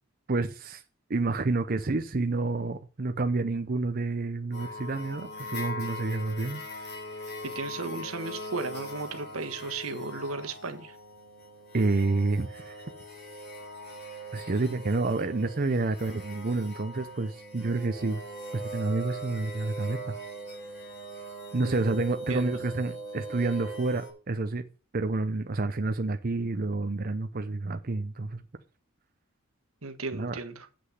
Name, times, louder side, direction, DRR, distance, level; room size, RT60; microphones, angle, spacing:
voice 1, 0.3-0.8 1.1-6.6 11.7-12.8 14.3-18.2 18.5-20.1 21.5-24.6 24.9-28.4 30.1-30.4, right 3 dB, 45° right, 0.7 m, -29 dB
sound 1, 4.5-24.1, equal, 50° left, 4.5 m, -41 dB
voice 2, 7.4-11.0 21.6-22.0 22.3-22.6 29.8-30.7, right 3 dB, 85° right, 1.5 m, -35 dB
7.9 x 6.4 x 8.0 m
head